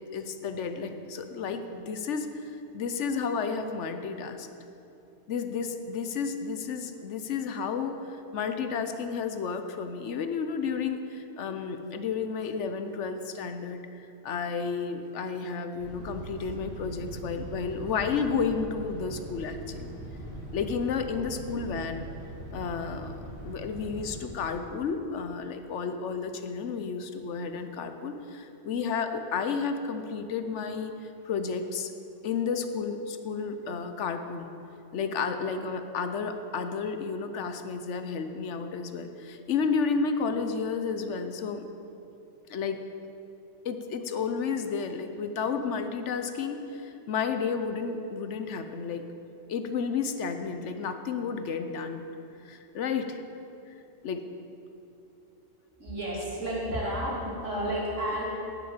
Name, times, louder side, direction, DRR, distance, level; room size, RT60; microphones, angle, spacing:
voice 1, 0.0-2.3 2.7-4.5 5.3-13.9 14.2-19.9 20.5-22.1 22.5-31.9 32.2-34.5 34.9-41.7 42.5-42.8 43.6-49.0 49.5-52.1 52.4-53.2 54.0-54.2, left 5 dB, 70° left, 8 dB, 1.0 m, -32 dB
sound 1, 15.8-24.3, right 1 dB, 60° right, 2.1 m, -41 dB
voice 2, 55.8-58.2, right 1 dB, 80° right, -6 dB, 3.3 m, -31 dB
9.2 x 7.0 x 8.8 m, 2.8 s
omnidirectional pair, 1.3 m